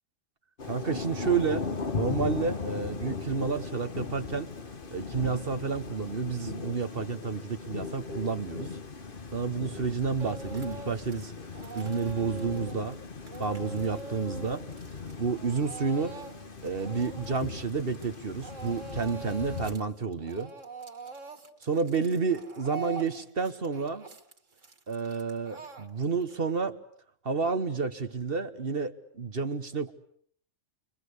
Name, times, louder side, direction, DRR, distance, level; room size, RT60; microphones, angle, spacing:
Thunder / Rain, 0.6-19.8, left 4 dB, 45° left, 1.5 m, -38 dB
voice 1, 0.6-1.7 1.9-4.5 4.9-8.7 9.3-11.3 11.7-13.0 13.4-14.6 15.2-16.2 16.6-20.5 21.6-24.1 24.9-26.8 27.2-29.9, right 5 dB, 50° right, 10 dB, 1.5 m, -30 dB
Speech / Crying sobbing, 10.2-11.2 11.5-18.2 18.4-19.8 20.1-26.3, right 3 dB, 90° right, 2.6 m, -43 dB
29.5 x 24.0 x 8.2 m, 0.63 s
omnidirectional pair, 1.3 m